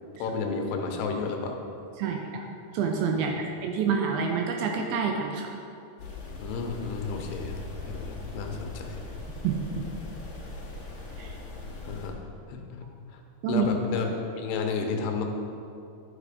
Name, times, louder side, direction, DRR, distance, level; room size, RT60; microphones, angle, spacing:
voice 1, 0.2-1.6 3.1-3.4 6.4-9.0 11.8-12.1 12.5-13.2 13.5-14.1 14.4-15.2, left 5 dB, 80° left, 3 dB, 2.8 m, -32 dB
voice 2, 2.0-2.5 2.7-5.5 9.3-9.9 11.2-11.3 13.4-13.7, right 6 dB, 80° right, 2 dB, 2.3 m, -28 dB
sound 1, 6.0-12.1, left 2 dB, 50° left, 2.2 m, -40 dB
11.5 x 5.1 x 4.9 m, 2.6 s
omnidirectional pair, 4.7 m